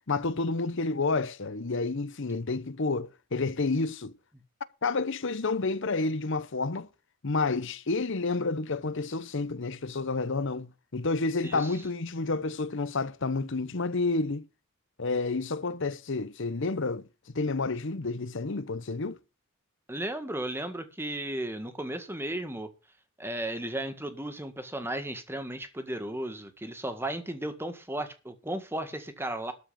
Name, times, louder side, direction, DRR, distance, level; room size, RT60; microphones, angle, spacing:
voice 1, 0.1-4.1 4.8-6.9 7.2-14.5 15.0-17.0 17.3-19.2, left 3 dB, 65° left, 0.9 m, -30 dB
voice 2, 19.9-22.7 23.2-29.5, right 1 dB, 10° right, 1.7 m, -35 dB
13.0 x 4.9 x 8.7 m
head